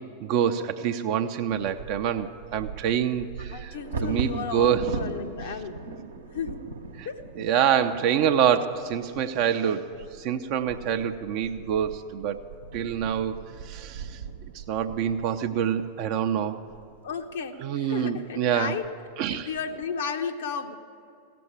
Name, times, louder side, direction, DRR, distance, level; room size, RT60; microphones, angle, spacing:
voice 1, 0.2-3.8 4.0-4.9 7.0-7.1 7.4-12.5 12.7-14.2 14.5-16.6 17.6-18.8 19.2-19.5, right 9 dB, 45° right, 7 dB, 0.5 m, -26 dB
Bird vocalization bird call bird song / Wind / Thunder, 1.5-17.4 18.0-18.1 18.5-18.9 19.3-19.8, right 4 dB, 70° right, 1.0 m, -40 dB
voice 2, 3.4-5.8 6.3-6.6 7.0-7.2 17.0-18.9 19.3-20.7, left 6 dB, 60° left, 6 dB, 0.8 m, -34 dB
16.5 x 6.9 x 9.8 m, 2.6 s
figure-of-eight pair, 90°, 0 cm